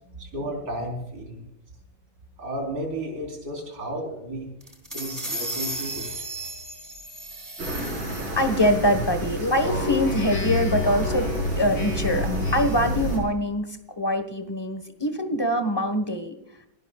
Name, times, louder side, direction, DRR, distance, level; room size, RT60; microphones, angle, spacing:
voice 1, 0.2-1.5 2.4-4.5 4.9-6.1, right 1 dB, 45° right, 1 dB, 4.6 m, -33 dB
sound 1, 4.6-8.6, right 1 dB, 10° right, 3.0 m, -35 dB
sound 2, 7.6-13.2, right 1 dB, 75° right, 5.5 m, -30 dB
voice 2, 8.4-13.7 14.0-16.3, equal, 15° left, 8 dB, 1.1 m, -24 dB
Speech synthesizer, 9.6-12.9, left 3 dB, 55° left, 6.5 m, -29 dB
29.0 x 12.5 x 2.4 m, 0.83 s
omnidirectional pair, 2.2 m